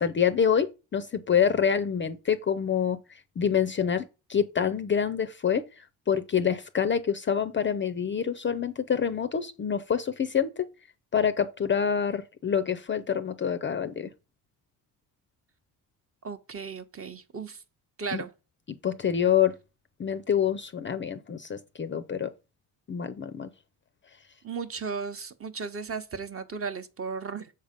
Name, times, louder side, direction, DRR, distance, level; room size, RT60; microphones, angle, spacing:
voice 1, 0.0-3.0 3.4-4.0 4.3-5.6 6.1-10.7 11.1-14.1 18.1-18.2 18.8-19.6 20.0-22.3 22.9-23.5, left 7 dB, 30° left, 0.5 m, -26 dB
voice 2, 16.2-17.6 18.0-18.3 24.4-27.5, right 5 dB, 35° right, 0.8 m, -35 dB
6.6 x 4.0 x 5.1 m
cardioid pair, 90°, 41 cm